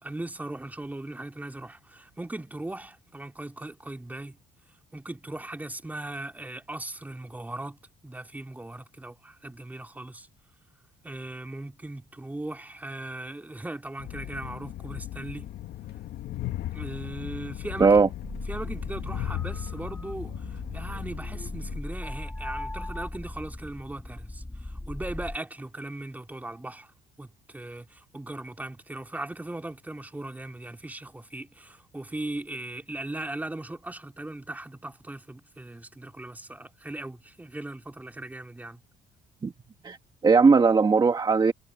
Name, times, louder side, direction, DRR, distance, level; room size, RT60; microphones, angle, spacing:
voice 1, 0.0-4.4 4.9-10.3 11.0-15.5 16.7-18.0 18.5-26.9 27.2-38.8, right 2 dB, 10° right, 3.2 m, -38 dB
Train, 14.0-21.8, left 13 dB, 70° left, 1.7 m, -37 dB
sound 1, 18.2-25.4, left 1 dB, 10° left, 2.6 m, -38 dB
voice 2, 40.2-41.5, right 4 dB, 25° right, 1.7 m, -18 dB
cardioid pair, 110°, 17 cm